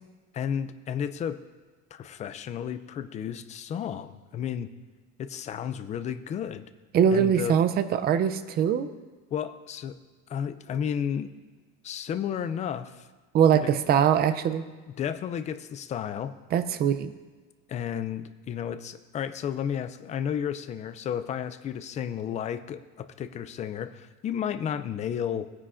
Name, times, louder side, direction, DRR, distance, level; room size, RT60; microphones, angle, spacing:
voice 1, 0.3-1.4 1.9-4.7 5.2-6.6 7.1-7.6 9.3-10.0 10.3-11.3 11.8-13.1 13.5-13.7 15.0-16.3 17.7-25.5, left 8 dB, 25° left, 12 dB, 0.3 m, -32 dB
voice 2, 6.9-8.9 13.3-14.6 16.5-17.1, right 8 dB, 35° right, 12 dB, 0.5 m, -22 dB
17.5 x 9.6 x 2.5 m, 1.3 s
cardioid pair, 165°, 29 cm